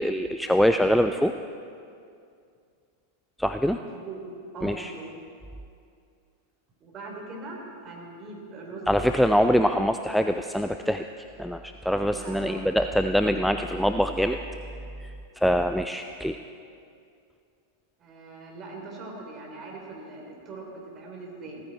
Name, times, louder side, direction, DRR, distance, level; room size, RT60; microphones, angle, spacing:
voice 1, 0.0-1.3 3.4-3.8 4.6-4.9 8.9-14.4 15.0-16.4, equal, ahead, 7 dB, 0.4 m, -24 dB
voice 2, 3.8-4.2 4.5-5.1 6.8-9.5 12.1-12.6 18.0-21.6, right 3 dB, 30° right, -1 dB, 3.7 m, -41 dB
16.5 x 14.0 x 4.3 m, 2.4 s
figure-of-eight pair, 90°, 0 cm